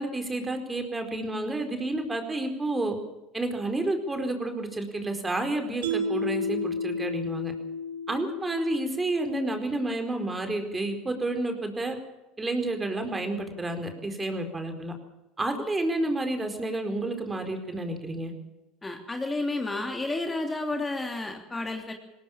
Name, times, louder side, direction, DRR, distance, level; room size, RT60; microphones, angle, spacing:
voice 1, 0.0-3.0 3.3-7.5 8.1-12.0 12.4-14.9 15.4-18.3, right 2 dB, 20° right, 6 dB, 4.5 m, -30 dB
Mallet percussion, 5.8-9.1, left 1 dB, 85° right, 3.6 m, -32 dB
voice 2, 18.8-21.9, left 2 dB, 15° left, 4 dB, 3.1 m, -31 dB
20.0 x 18.0 x 7.4 m, 0.99 s
hypercardioid pair, 85°, 0 cm